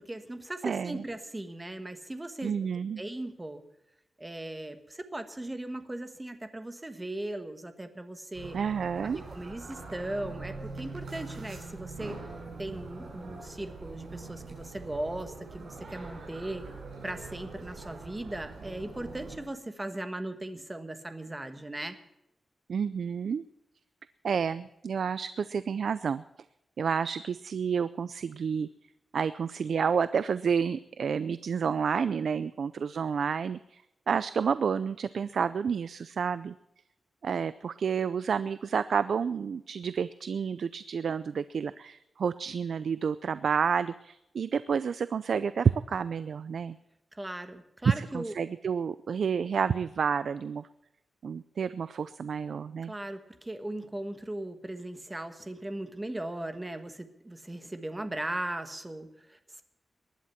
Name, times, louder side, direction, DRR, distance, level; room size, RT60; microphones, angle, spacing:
voice 1, 0.0-2.7 3.0-3.6 4.2-8.6 9.1-12.2 12.6-16.7 17.0-22.0 47.1-48.3 52.8-59.6, right 1 dB, 15° right, 9 dB, 1.3 m, -38 dB
voice 2, 0.6-1.0 2.4-3.0 8.5-9.2 22.7-23.4 24.2-26.2 26.8-28.7 29.1-36.5 37.2-46.8 47.9-50.7 51.2-52.9, right 6 dB, 65° right, 15 dB, 0.5 m, -30 dB
sound 1, 8.3-19.4, right 3 dB, 80° right, 6.8 m, -43 dB
19.5 x 11.5 x 5.9 m, 0.88 s
wide cardioid pair, 170°, 0 cm